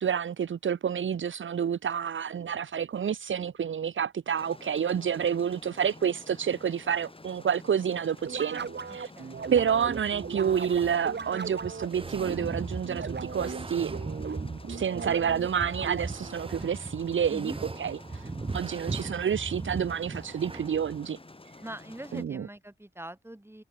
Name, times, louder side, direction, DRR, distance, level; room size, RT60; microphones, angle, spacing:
voice 1, 0.0-9.1 9.5-13.9 14.7-17.5 17.8-18.2 18.5-21.2 22.1-22.5, right 8 dB, 75° right, 0.7 m, -29 dB
sound 1, 4.4-22.2, left 2 dB, 25° left, 2.9 m, -50 dB
sound 2, 8.2-16.3, right 5 dB, 60° right, 1.9 m, -38 dB
voice 2, 8.9-9.4 17.3-17.6 21.6-23.6, right 1 dB, 10° right, 5.3 m, -42 dB
sound 3, 9.4-21.1, right 3 dB, 25° right, 0.9 m, -39 dB
cardioid pair, 65°, 20 cm